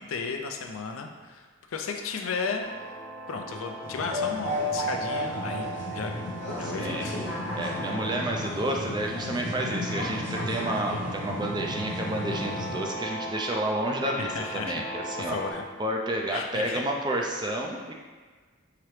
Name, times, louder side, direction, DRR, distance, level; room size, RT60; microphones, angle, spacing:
voice 1, 0.0-2.6 3.3-6.2 6.6-7.1 14.2-14.8 15.3-15.6 16.3-16.8, left 5 dB, 80° left, 4 dB, 0.5 m, -34 dB
sound 1, 2.6-15.5, right 1 dB, 65° right, 0.9 m, -40 dB
sound 2, 3.8-12.8, left 1 dB, 55° left, 0.8 m, -33 dB
voice 2, 6.6-7.1 7.5-15.4 15.8-17.9, right 1 dB, 20° right, 0 dB, 0.4 m, -30 dB
5.7 x 2.9 x 3.2 m, 1.4 s
head